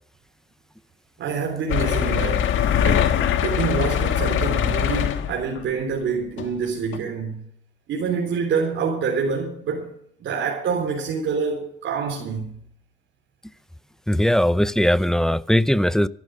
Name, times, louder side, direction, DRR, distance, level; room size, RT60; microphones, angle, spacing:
voice 1, 1.2-2.5 2.8-7.5 7.9-12.6, right 5 dB, 70° right, 3.6 m, -26 dB
sound 1, 1.7-5.6 6.4-6.5 6.9-7.0, left 9 dB, 80° left, 1.6 m, -22 dB
voice 2, 14.1-16.1, equal, 5° left, 0.6 m, -19 dB
15.0 x 12.0 x 6.4 m
cardioid pair, 90°, 20 cm